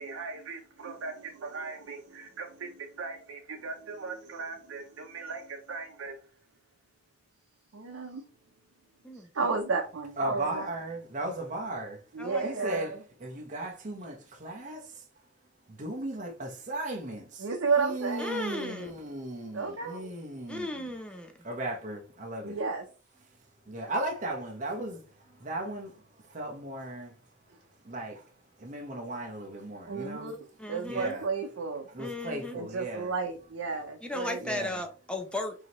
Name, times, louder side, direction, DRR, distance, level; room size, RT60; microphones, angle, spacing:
voice 1, 0.0-6.2 7.7-8.2 9.1-10.7 12.1-13.0 17.4-18.4 19.5-20.1 22.4-22.9 29.9-30.4 30.7-31.9 32.5-34.6, right 4 dB, 90° right, 0.6 m, -34 dB
voice 2, 10.2-12.0 12.4-12.9 13.2-15.0 15.7-17.5 17.8-20.9 21.4-22.6 23.7-26.0 26.3-27.1 27.8-28.2 28.6-30.3 30.9-31.3 31.9-33.1 34.4-34.8, right 1 dB, 40° right, 0.8 m, -36 dB
voice 3, 18.2-18.9 20.5-21.3 30.6-31.2 32.0-32.6 34.0-35.5, left 1 dB, 5° left, 0.6 m, -36 dB
4.8 x 2.8 x 3.0 m
head